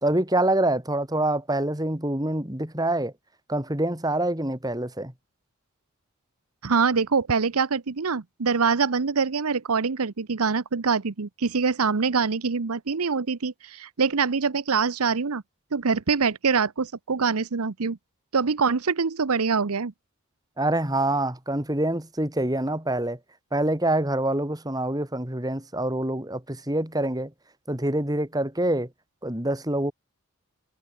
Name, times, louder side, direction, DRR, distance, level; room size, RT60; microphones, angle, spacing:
voice 1, 0.0-3.1 3.5-5.1 20.6-23.2 23.5-27.3 27.7-28.9 29.2-29.9, right 1 dB, 15° right, 2.4 m, -26 dB
voice 2, 6.6-15.4 15.7-18.0 18.3-19.9, right 5 dB, 90° right, 0.8 m, -24 dB
head